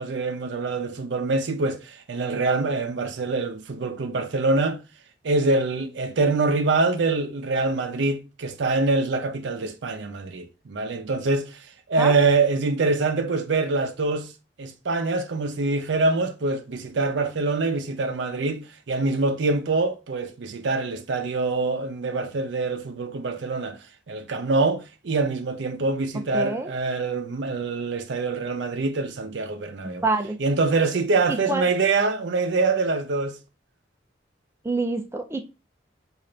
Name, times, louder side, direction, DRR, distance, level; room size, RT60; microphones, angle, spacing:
voice 1, 0.0-4.8 5.2-11.6 11.9-14.3 14.6-18.6 18.9-23.8 24.1-30.0 30.4-33.4, right 3 dB, 70° right, 0.5 m, -24 dB
voice 2, 26.3-26.7 29.8-30.4 31.3-31.6 34.6-35.4, right 3 dB, 15° right, 0.3 m, -26 dB
3.8 x 2.5 x 3.2 m
head